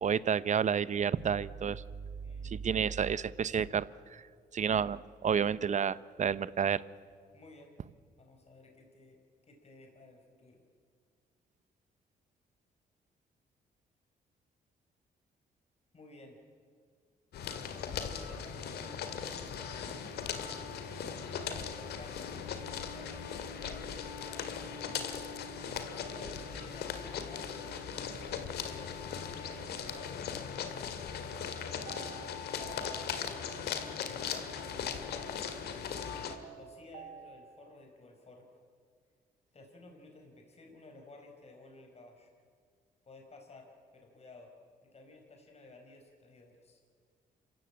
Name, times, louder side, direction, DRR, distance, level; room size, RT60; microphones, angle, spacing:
voice 1, 0.0-1.8 2.4-3.9 4.1-4.2 4.5-6.8, right 7 dB, 45° right, 18 dB, 0.8 m, -30 dB
voice 2, 2.2-3.1 7.3-7.7 8.2-9.2 9.5-10.6 15.9-16.4 18.0-20.5 21.3-22.3 22.9-25.0 25.9-31.4 33.7-36.0 36.5-38.6 39.5-42.3 43.0-44.5 44.8-46.8, left 2 dB, 40° left, 2 dB, 4.8 m, -54 dB
sound 1, 17.3-36.4, left 7 dB, 80° left, 2.0 m, -39 dB
sound 2, 31.9-33.7 36.3-37.8, right 7 dB, 85° right, 1.6 m, -51 dB
27.0 x 15.5 x 8.7 m, 2.1 s
cardioid pair, 75°, 17 cm